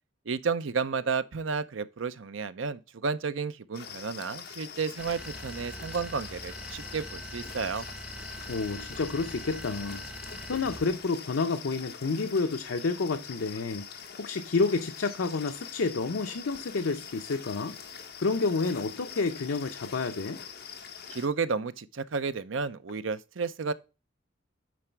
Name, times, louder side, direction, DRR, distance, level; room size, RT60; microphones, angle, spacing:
voice 1, 0.3-7.9 21.1-23.7, right 5 dB, 75° right, 0.6 m, -32 dB
sound 1, 3.7-21.3, left 7 dB, 55° left, 1.3 m, -44 dB
sound 2, 5.0-11.1, right 1 dB, 5° right, 0.5 m, -43 dB
voice 2, 8.5-10.0 10.5-13.9 14.2-17.8 18.2-20.4, left 4 dB, 85° left, 0.6 m, -29 dB
9.4 x 3.9 x 4.5 m
head